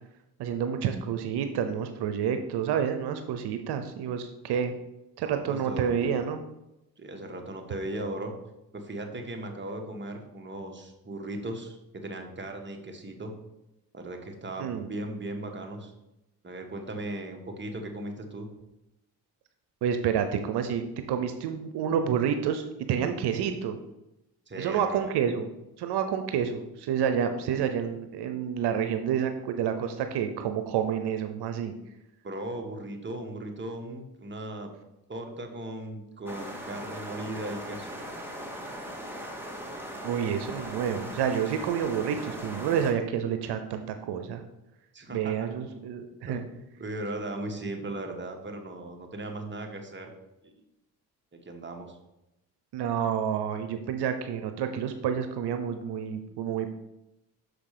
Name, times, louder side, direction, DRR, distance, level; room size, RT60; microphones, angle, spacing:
voice 1, 0.4-4.7 5.2-6.4 14.6-14.9 19.8-23.8 24.6-25.5 25.8-31.7 40.0-44.4 45.1-46.4 52.7-56.7, right 8 dB, 85° right, 8 dB, 0.8 m, -29 dB
voice 2, 5.2-6.2 7.0-8.3 8.7-13.3 13.9-15.9 16.4-18.5 24.5-25.1 32.2-34.7 35.1-37.9 44.9-45.8 46.2-50.1 50.4-50.5 51.3-52.0, right 1 dB, 30° right, 3 dB, 1.6 m, -37 dB
sound 1, 36.3-42.9, equal, 5° right, 1.9 m, -39 dB
6.3 x 5.1 x 6.7 m, 0.91 s
cardioid pair, 70°, 39 cm